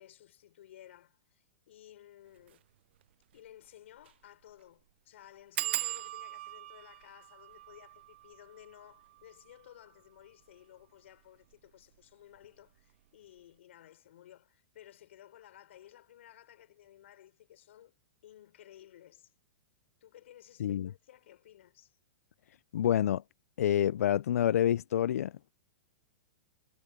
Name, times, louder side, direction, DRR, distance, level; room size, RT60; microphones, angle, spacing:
voice 1, 0.0-2.6 3.3-17.9 18.2-19.3 20.0-21.9, left 12 dB, 55° left, 4.9 m, -56 dB
sound 1, 2.4-2.6 3.0-3.1 3.3-3.4 4.0-4.2 4.5-4.6 5.6-10.8 11.5-12.0 12.3-12.7 12.9-13.0, right 14 dB, 45° right, 0.5 m, -41 dB
voice 2, 20.6-20.9 22.7-23.2 23.6-25.5, left 10 dB, 90° left, 0.4 m, -28 dB
supercardioid pair, 180°, 8 cm